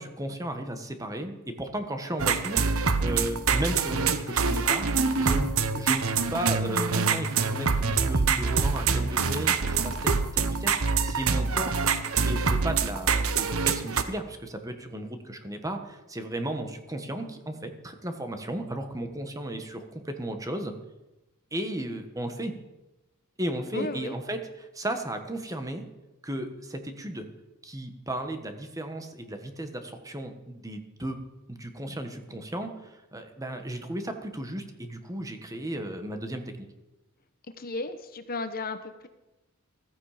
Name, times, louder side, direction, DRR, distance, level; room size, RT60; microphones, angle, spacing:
voice 1, 0.0-2.7 3.0-10.8 11.0-11.8 12.2-20.7 21.5-22.5 23.4-25.9 26.2-27.3 27.6-31.2 31.5-36.7, right 1 dB, 15° right, 6 dB, 1.5 m, -35 dB
sound 1, 2.2-14.0, right 5 dB, 75° right, 1.0 m, -25 dB
voice 2, 23.7-24.2 37.6-39.1, left 3 dB, 45° left, 9 dB, 1.0 m, -34 dB
15.0 x 14.5 x 5.1 m, 0.99 s
head